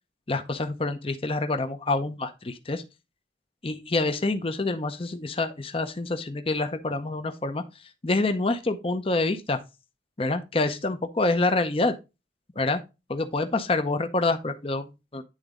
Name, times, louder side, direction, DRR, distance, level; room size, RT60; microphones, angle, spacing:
voice 1, 0.3-2.8 3.6-7.6 8.0-9.6 10.2-11.9 12.6-12.8 13.1-15.2, left 2 dB, 30° left, 0.7 m, -27 dB
9.9 x 3.9 x 3.6 m
head